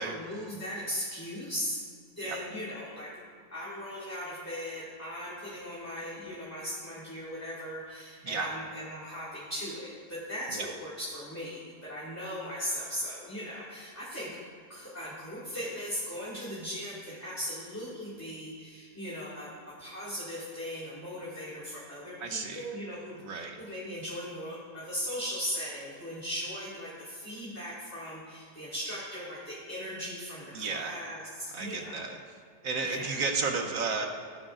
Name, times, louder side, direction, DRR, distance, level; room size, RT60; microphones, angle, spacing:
voice 1, 0.0-1.8 2.1-3.1 3.5-14.3 14.7-19.5 19.8-32.1 32.8-33.1, equal, 10° left, -9 dB, 2.1 m, -38 dB
voice 2, 22.2-22.7 23.2-23.6 30.5-31.0 31.5-32.2 32.6-34.1, right 4 dB, 60° right, 4 dB, 1.3 m, -33 dB
17.5 x 10.5 x 2.6 m, 2.2 s
omnidirectional pair, 1.7 m